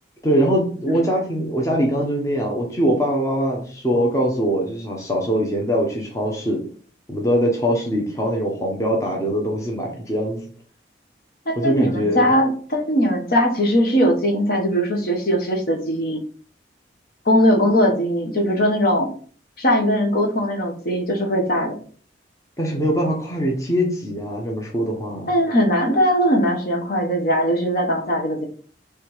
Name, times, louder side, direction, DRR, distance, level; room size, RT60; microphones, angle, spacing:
voice 1, 0.2-6.6 7.1-10.4 11.6-12.3 22.6-25.3, equal, 15° left, -1 dB, 0.9 m, -22 dB
voice 2, 11.5-16.2 17.2-19.1 19.6-21.8 25.3-28.4, equal, 55° left, 2 dB, 1.1 m, -20 dB
3.5 x 3.3 x 4.7 m, 0.43 s
head